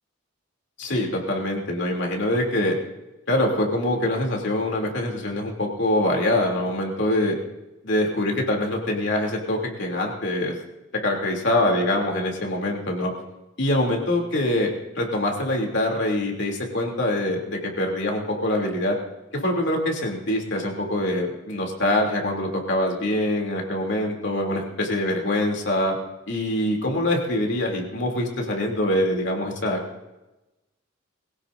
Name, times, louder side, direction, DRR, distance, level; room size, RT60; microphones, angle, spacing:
voice 1, 0.8-2.8 3.3-7.3 7.8-10.5 11.0-13.1 13.6-14.7 14.9-19.0 19.3-26.0 26.3-29.8, left 1 dB, 60° left, 0 dB, 3.1 m, -24 dB
23.0 x 17.0 x 2.7 m, 1.0 s
head